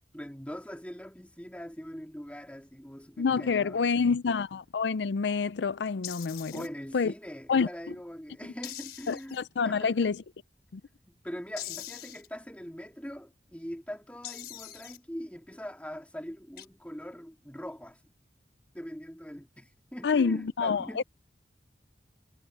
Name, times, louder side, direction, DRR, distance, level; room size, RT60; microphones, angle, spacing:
voice 1, 0.0-4.2 6.5-10.1 11.0-18.0 18.7-21.0, equal, 10° left, 2.3 m, -42 dB
voice 2, 3.2-6.6 6.9-7.1 7.5-7.7 9.1-10.2 10.7-10.8 20.0-21.0, left 5 dB, 85° left, 0.5 m, -27 dB
sound 1, 6.0-6.7 8.6-9.4 11.6-12.3 14.2-15.0 16.6-16.7, left 13 dB, 60° left, 4.6 m, -42 dB
head